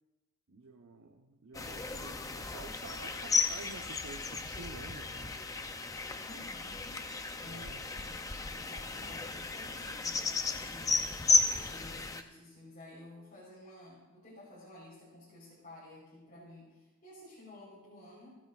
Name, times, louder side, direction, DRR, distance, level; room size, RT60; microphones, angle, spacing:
voice 1, 0.5-5.3 7.4-7.9, right 3 dB, 70° right, 2 dB, 0.9 m, -50 dB
sound 1, 1.5-12.2, left 4 dB, 15° left, 0.5 m, -34 dB
voice 2, 6.2-7.0 7.4-10.9 11.5-18.4, left 2 dB, 40° left, -8 dB, 4.2 m, -52 dB
27.5 x 9.2 x 2.5 m, 1.1 s
head